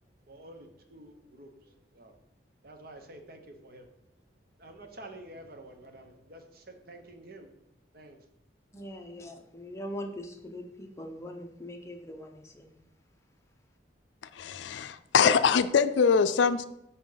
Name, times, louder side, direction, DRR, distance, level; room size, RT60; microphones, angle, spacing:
voice 1, 0.3-2.2 2.6-3.9 4.6-7.5 7.9-8.2, right 1 dB, 55° right, 5 dB, 1.0 m, -49 dB
voice 2, 8.7-12.7, left 1 dB, 15° left, 3 dB, 0.8 m, -41 dB
voice 3, 14.3-16.6, left 6 dB, 80° left, 12 dB, 0.4 m, -23 dB
10.5 x 4.1 x 3.9 m, 0.84 s
head